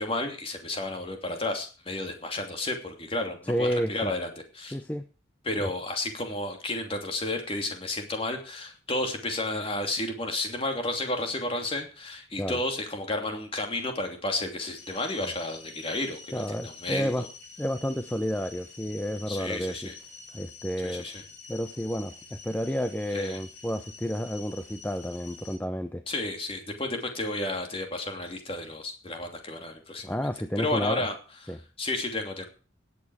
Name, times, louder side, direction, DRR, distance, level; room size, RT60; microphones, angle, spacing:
voice 1, 0.0-4.3 4.5-4.8 5.4-17.3 19.3-19.9 20.8-21.2 23.1-23.4 26.1-30.2 30.6-31.1 31.8-32.5, left 2 dB, 30° left, 4 dB, 2.8 m, -32 dB
voice 2, 3.4-4.1 4.7-5.0 5.6-5.7 12.4-12.6 16.3-17.3 17.6-19.9 20.3-21.1 21.5-26.0 30.0-31.0 31.5-31.6, equal, 10° left, 9 dB, 0.6 m, -31 dB
sound 1, 14.8-25.6, left 4 dB, 65° left, 5.3 m, -48 dB
17.5 x 8.6 x 4.8 m, 0.37 s
head